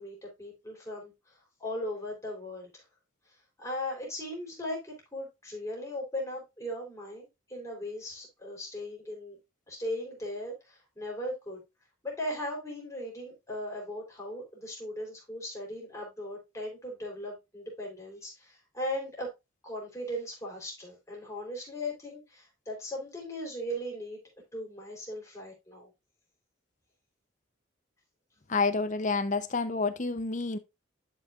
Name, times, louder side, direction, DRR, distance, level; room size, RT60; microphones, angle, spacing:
voice 1, 0.0-2.8 3.3-9.4 9.7-11.6 12.0-19.3 19.6-24.2 24.5-25.9, left 1 dB, 15° left, 3.7 m, -38 dB
voice 2, 28.5-30.6, left 3 dB, 35° left, 0.8 m, -29 dB
11.0 x 5.7 x 2.5 m
head